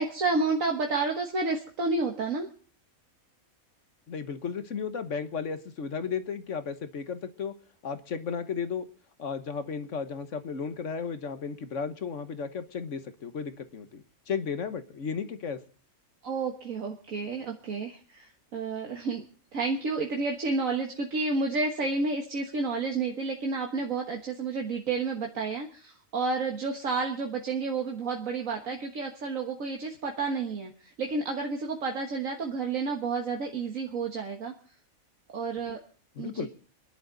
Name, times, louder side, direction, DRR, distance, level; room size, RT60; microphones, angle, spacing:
voice 1, 0.0-2.5 16.2-19.2 19.5-34.5 35.3-35.8 36.2-36.5, right 3 dB, 75° right, 2 dB, 1.9 m, -30 dB
voice 2, 4.1-7.5 7.8-8.9 9.2-15.6 36.2-36.5, left 6 dB, 60° left, 10 dB, 1.4 m, -34 dB
26.5 x 11.0 x 3.9 m, 0.42 s
omnidirectional pair, 1.4 m